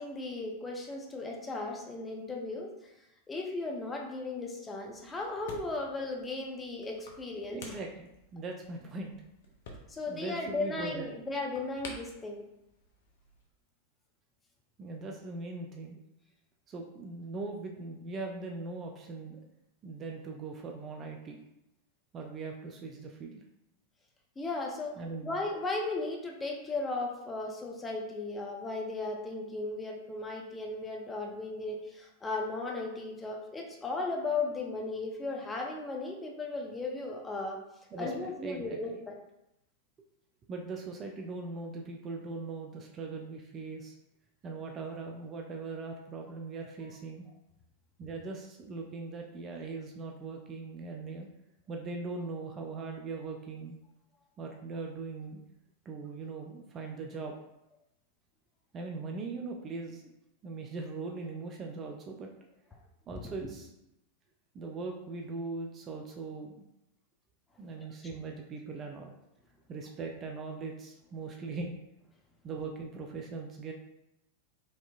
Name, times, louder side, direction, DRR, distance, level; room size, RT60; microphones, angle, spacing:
voice 1, 0.0-2.9 3.3-7.8 9.9-12.4 24.4-37.6 38.0-39.1 63.4-63.5 67.8-67.9, left 3 dB, 15° left, 0 dB, 0.6 m, -36 dB
sound 1, 4.8-13.5, left 2 dB, 55° left, 0.7 m, -52 dB
voice 2, 7.5-9.1 10.1-11.2 14.8-16.0 16.7-19.4 19.8-21.4 22.1-23.4 25.0-25.3 37.9-39.0 40.5-44.0 44.4-47.3 48.0-51.3 51.7-53.8 54.4-55.4 55.9-57.3 58.7-60.1 60.4-62.3 63.1-63.7 64.5-66.5 67.6-69.1 69.7-71.7 72.4-73.7, right 3 dB, 30° right, 2 dB, 0.4 m, -40 dB
4.2 x 2.8 x 2.4 m, 0.87 s
figure-of-eight pair, 90°, 0 cm